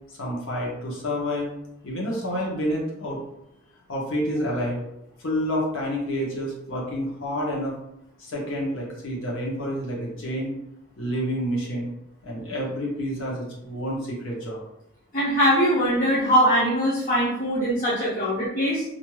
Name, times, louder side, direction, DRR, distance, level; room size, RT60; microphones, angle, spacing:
voice 1, 0.1-1.5 1.8-3.2 3.9-4.8 5.2-7.8 8.2-10.5 11.0-11.9 12.2-14.6, equal, 65° left, -3 dB, 0.9 m, -28 dB
voice 2, 15.1-18.8, equal, 40° left, -9 dB, 0.6 m, -21 dB
2.6 x 2.2 x 3.1 m, 0.83 s
head